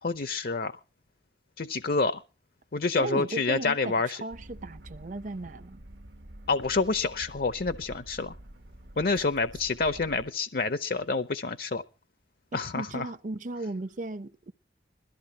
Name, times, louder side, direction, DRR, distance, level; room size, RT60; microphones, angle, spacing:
voice 1, 0.0-0.7 1.6-2.2 2.7-4.2 6.5-8.3 9.0-11.8 12.5-13.1, left 3 dB, 50° left, 0.7 m, -28 dB
voice 2, 3.0-5.8 9.0-9.1 12.5-14.5, right 2 dB, 40° right, 0.7 m, -36 dB
sound 1, 4.3-10.3, right 1 dB, 65° right, 1.4 m, -48 dB
21.5 x 14.0 x 2.9 m
head